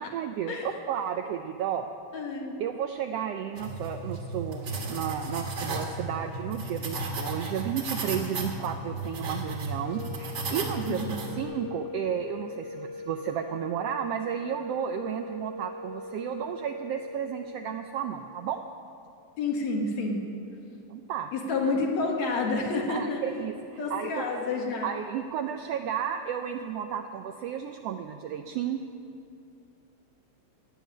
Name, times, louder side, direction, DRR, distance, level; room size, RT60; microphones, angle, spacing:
voice 1, 0.1-1.9 2.6-18.6 20.9-21.3 22.9-24.3 24.8-28.8, right 9 dB, 80° right, 6 dB, 1.4 m, -33 dB
voice 2, 2.1-2.6 10.9-11.2 19.4-20.3 21.3-23.2 23.8-24.9, left 3 dB, 70° left, 1 dB, 2.9 m, -29 dB
sound 1, 3.6-11.4, right 2 dB, 40° right, 1.9 m, -34 dB
sound 2, 9.7-17.9, left 3 dB, 45° left, 1.5 m, -41 dB
17.0 x 7.3 x 9.3 m, 2.6 s
omnidirectional pair, 3.3 m